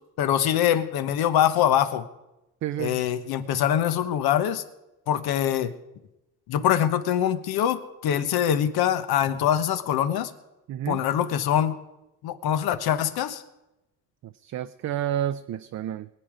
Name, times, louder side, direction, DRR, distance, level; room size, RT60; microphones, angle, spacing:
voice 1, 0.2-2.1 2.8-4.6 5.1-5.7 6.5-10.3 10.9-11.8 12.2-13.4, left 10 dB, 80° left, 10 dB, 1.2 m, -24 dB
voice 2, 2.6-3.0 10.7-11.0 14.2-16.1, right 11 dB, 50° right, 10 dB, 0.5 m, -30 dB
22.5 x 9.2 x 5.0 m, 0.95 s
cardioid pair, 125°, 37 cm